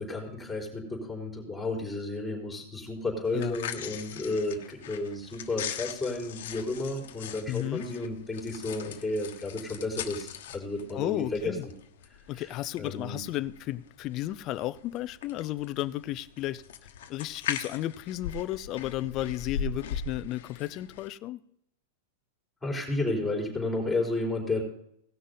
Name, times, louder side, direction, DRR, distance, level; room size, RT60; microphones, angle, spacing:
voice 1, 0.0-11.7 12.3-12.5 12.8-13.2 22.6-24.6, left 2 dB, 5° left, 4.1 m, -32 dB
sound 1, 3.2-21.1, left 7 dB, 75° left, 1.3 m, -40 dB
voice 2, 7.5-7.8 10.9-11.7 12.3-16.6 17.1-21.4, left 15 dB, 40° left, 0.6 m, -33 dB
18.5 x 6.3 x 3.9 m
supercardioid pair, 135°, 0 cm